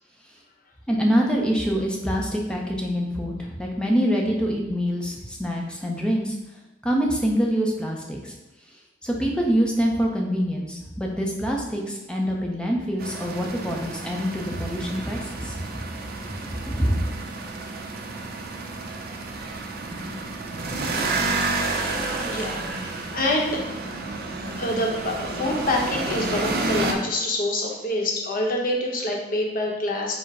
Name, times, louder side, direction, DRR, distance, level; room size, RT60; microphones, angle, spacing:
voice 1, 0.9-6.4 6.8-8.3 9.0-15.8 16.2-17.0, equal, 5° left, -1 dB, 0.6 m, -25 dB
sound 1, 13.0-26.9, right 3 dB, 55° right, 0.5 m, -30 dB
voice 2, 22.2-23.6 24.6-30.1, left 1 dB, 45° left, 0 dB, 0.8 m, -26 dB
4.7 x 2.1 x 4.7 m, 1.0 s
head